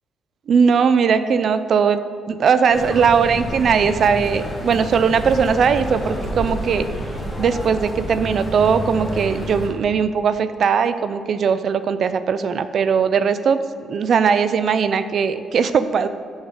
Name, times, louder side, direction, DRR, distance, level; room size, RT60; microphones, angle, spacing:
voice 1, 0.5-2.0 2.3-6.9 7.4-13.6 13.9-16.1, right 6 dB, 60° right, 12 dB, 0.5 m, -19 dB
sound 1, 2.7-9.7, equal, 15° left, 2.0 m, -29 dB
7.9 x 6.5 x 5.0 m, 2.3 s
cardioid pair, 90°, 0 cm